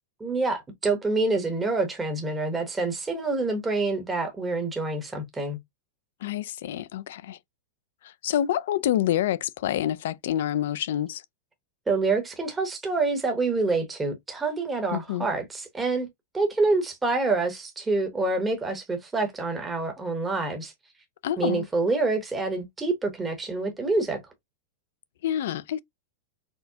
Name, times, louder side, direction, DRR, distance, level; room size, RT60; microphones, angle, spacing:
voice 1, 0.2-5.6 11.9-16.1 16.3-20.7 21.4-24.2, right 3 dB, 10° right, 0.9 m, -27 dB
voice 2, 6.2-7.4 8.0-11.2 14.9-15.3 21.2-21.7 25.2-25.8, left 11 dB, 70° left, 0.4 m, -27 dB
4.3 x 2.1 x 2.7 m
supercardioid pair, 155°, 0 cm